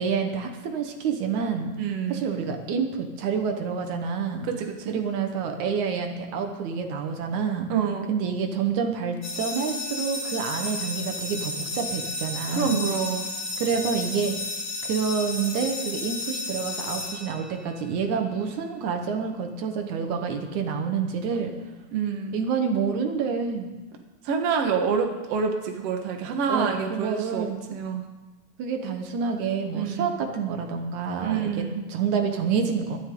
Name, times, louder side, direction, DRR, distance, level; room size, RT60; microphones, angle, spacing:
voice 1, 0.0-1.7 2.1-4.5 4.9-7.7 8.1-12.8 13.6-14.3 14.8-21.5 22.3-23.7 26.5-27.6 28.6-31.6 31.9-33.0, right 6 dB, 80° right, 5 dB, 2.6 m, -28 dB
voice 2, 1.8-2.2 4.4-5.0 7.7-8.1 12.5-13.3 21.9-22.4 24.2-28.0 29.7-30.1 31.2-31.8, right 6 dB, 60° right, 3 dB, 2.3 m, -27 dB
sound 1, 9.2-17.9, left 2 dB, 45° left, 2.8 m, -33 dB
21.5 x 12.5 x 3.8 m, 1.1 s
omnidirectional pair, 3.3 m